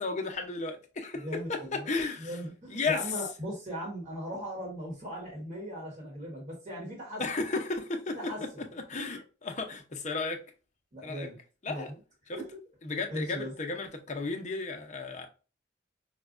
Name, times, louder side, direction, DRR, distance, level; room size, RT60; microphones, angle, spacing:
voice 1, 0.0-2.3 2.7-3.1 7.2-8.2 8.7-10.4 11.0-11.3 11.6-11.9 12.8-15.3, left 3 dB, 35° left, 0.6 m, -34 dB
voice 2, 1.2-1.9 2.2-7.2 8.2-8.4 10.9-11.4 11.7-12.0 12.3-12.4 13.1-13.5, equal, 40° right, 1.2 m, -38 dB
5.1 x 2.2 x 2.4 m
head